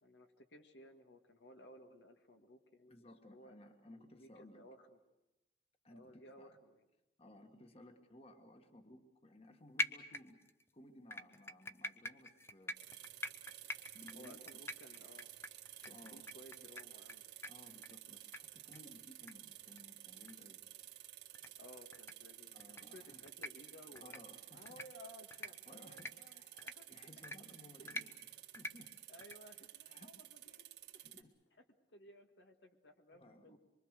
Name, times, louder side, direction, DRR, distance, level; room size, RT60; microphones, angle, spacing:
voice 1, 0.0-3.0 3.3-3.6 4.0-5.0 5.9-6.8 14.1-15.3 15.8-17.2 21.6-24.2 24.5-26.9 27.8-28.1 29.1-30.7 30.9-31.1 31.9-33.6, left 1 dB, 90° left, 5 dB, 1.9 m, -58 dB
voice 2, 2.9-4.6 5.8-6.1 6.4-6.6 7.2-10.4 10.7-12.8 13.8-14.4 15.5-16.2 17.5-20.6 22.5-23.2 23.9-24.9 25.3-28.2 28.6-29.0 29.8-30.1 31.0-31.3 33.1-33.6, left 1 dB, 35° left, 6 dB, 1.6 m, -59 dB
sound 1, 9.8-10.6 11.1-17.1 17.4-17.5 17.8-17.9 18.3-18.4 18.7-18.8 19.3-19.4 19.7-19.8 20.3-20.4 21.3-21.5 21.9-22.1 22.6-22.8 23.3-23.5 24.0-24.2 24.7-24.9 25.3-25.5 26.0-26.1 26.6-26.7 27.2-27.4 27.9-28.0 28.5-28.7 29.2-29.4, left 2 dB, 15° left, 0.8 m, -43 dB
sound 2, 12.8-31.2, right 13 dB, 70° right, 1.9 m, -54 dB
25.0 x 23.5 x 6.6 m, 0.97 s
head